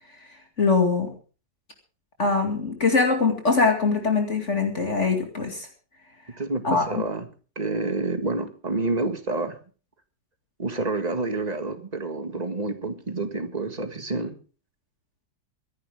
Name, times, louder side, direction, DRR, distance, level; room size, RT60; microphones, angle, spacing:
voice 1, 0.6-1.1 2.2-5.7 6.6-7.0, left 4 dB, 45° left, 4 dB, 2.6 m, -22 dB
voice 2, 6.4-7.3 7.5-9.6 10.6-14.3, right 3 dB, 25° right, 8 dB, 1.8 m, -28 dB
25.0 x 11.0 x 3.6 m, 0.37 s
omnidirectional pair, 1.8 m